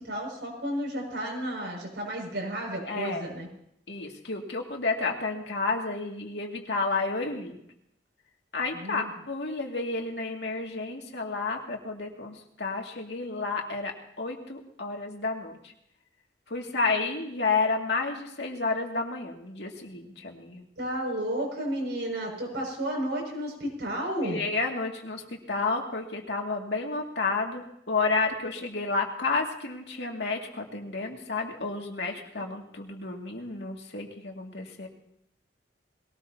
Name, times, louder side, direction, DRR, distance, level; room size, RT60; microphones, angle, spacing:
voice 1, 0.0-3.5 8.8-9.1 20.8-24.4, right 1 dB, 75° right, -1 dB, 6.5 m, -32 dB
voice 2, 2.8-3.3 3.9-7.6 8.5-15.7 16.5-20.7 24.2-34.9, left 3 dB, 70° left, 1 dB, 2.4 m, -31 dB
21.5 x 18.5 x 2.9 m, 0.75 s
head